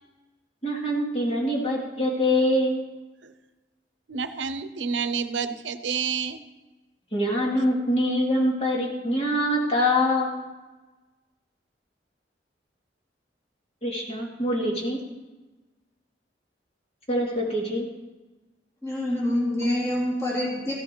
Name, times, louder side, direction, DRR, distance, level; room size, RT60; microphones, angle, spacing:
voice 1, 0.6-2.8 7.1-10.4 13.8-15.0 17.1-17.9, left 1 dB, 35° left, -2 dB, 2.7 m, -24 dB
voice 2, 4.1-6.4, right 6 dB, 90° right, 11 dB, 0.7 m, -29 dB
voice 3, 18.8-20.7, left 1 dB, 15° left, -6 dB, 2.9 m, -26 dB
14.5 x 10.5 x 4.6 m, 1.2 s
head